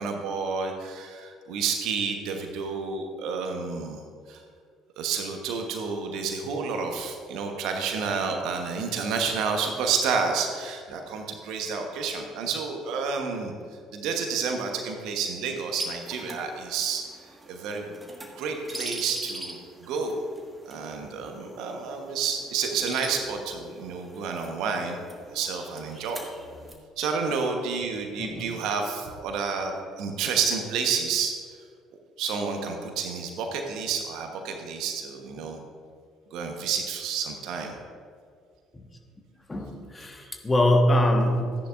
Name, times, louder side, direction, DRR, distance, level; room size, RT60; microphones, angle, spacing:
voice 1, 0.0-4.0 4.3-4.4 5.0-13.5 13.9-17.0 17.5-17.8 18.3-20.1 20.7-25.0 25.3-26.3 27.0-31.6 32.2-35.6 36.3-37.8 40.2-40.3, right 5 dB, 60° right, 3 dB, 1.2 m, -30 dB
sound 1, 15.7-26.7, right 1 dB, 15° right, 1.7 m, -42 dB
voice 2, 28.2-28.6 38.7-38.8 39.5-41.6, left 1 dB, 20° left, 3 dB, 1.5 m, -23 dB
13.5 x 10.5 x 2.6 m, 2.1 s
figure-of-eight pair, 55°, 0 cm